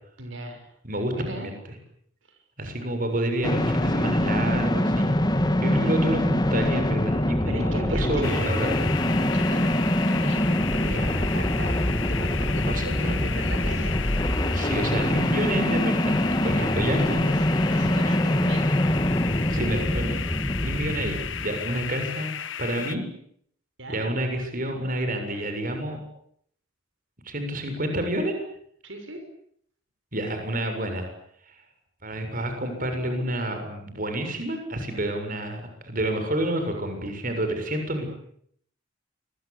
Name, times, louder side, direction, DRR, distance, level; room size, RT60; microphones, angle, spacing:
voice 1, 0.2-0.7 1.1-1.5 7.5-8.5 9.0-14.3 16.6-17.4 17.7-18.7 23.8-24.1 28.8-29.2, right 1 dB, 75° right, 5 dB, 6.6 m, -38 dB
voice 2, 0.8-1.5 2.6-8.8 12.7-13.2 14.5-17.2 19.5-20.2 20.6-23.0 23.9-26.0 27.2-28.3 30.1-31.1 31.5-31.6 32.0-38.1, right 1 dB, 45° right, 6 dB, 7.2 m, -29 dB
sound 1, 3.4-21.9, left 1 dB, 20° left, 2.2 m, -24 dB
sound 2, 8.2-23.0, left 9 dB, 70° left, 1.4 m, -34 dB
28.5 x 23.5 x 8.6 m, 0.67 s
head